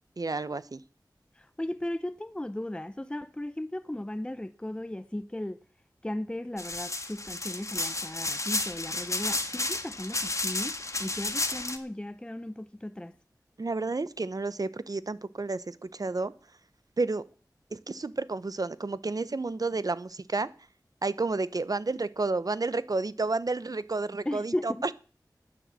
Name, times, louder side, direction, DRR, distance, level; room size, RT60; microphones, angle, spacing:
voice 1, 0.2-0.8 13.6-16.3 17.0-17.2 17.7-20.5 21.0-24.9, right 3 dB, 55° right, 0.8 m, -31 dB
voice 2, 1.4-5.6 6.0-13.1 24.3-24.9, left 1 dB, 15° left, 0.7 m, -36 dB
sound 1, 6.6-11.8, left 2 dB, 45° left, 1.5 m, -32 dB
10.5 x 9.9 x 7.6 m
wide cardioid pair, 70°, 7 cm